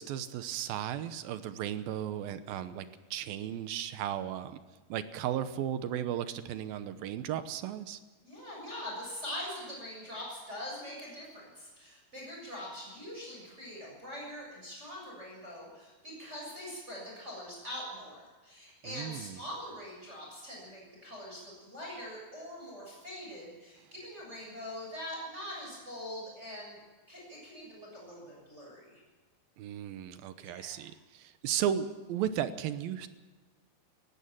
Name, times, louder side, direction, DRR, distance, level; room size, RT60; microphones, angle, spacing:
voice 1, 0.0-4.6 4.9-8.0 18.9-19.4 29.6-33.1, right 10 dB, 80° right, 11 dB, 2.6 m, -35 dB
voice 2, 8.2-26.8 27.1-29.0 30.4-30.7, equal, 15° right, -4 dB, 7.3 m, -43 dB
18.5 x 15.5 x 9.0 m, 1.2 s
omnidirectional pair, 4.4 m